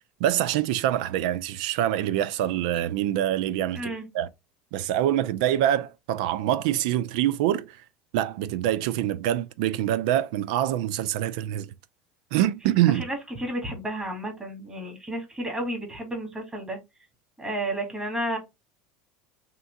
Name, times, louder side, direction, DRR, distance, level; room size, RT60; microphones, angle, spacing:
voice 1, 0.2-4.3 4.7-7.8 8.1-11.7 12.3-13.0, right 12 dB, 75° right, 0.4 m, -25 dB
voice 2, 3.7-4.0 12.9-16.8 17.4-18.4, right 1 dB, 15° right, 1.9 m, -32 dB
3.7 x 2.9 x 3.5 m
supercardioid pair, 105°, 4 cm